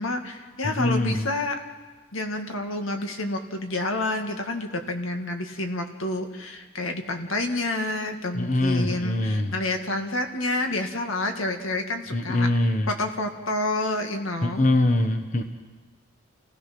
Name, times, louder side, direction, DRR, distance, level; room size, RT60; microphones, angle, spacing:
voice 1, 0.0-1.6 2.1-12.5 12.9-14.7, left 2 dB, 80° left, 4 dB, 2.0 m, -29 dB
voice 2, 0.6-1.3 8.3-9.5 12.1-12.9 14.4-15.4, left 1 dB, 35° left, 6 dB, 1.1 m, -23 dB
29.0 x 16.5 x 6.0 m, 1.3 s
head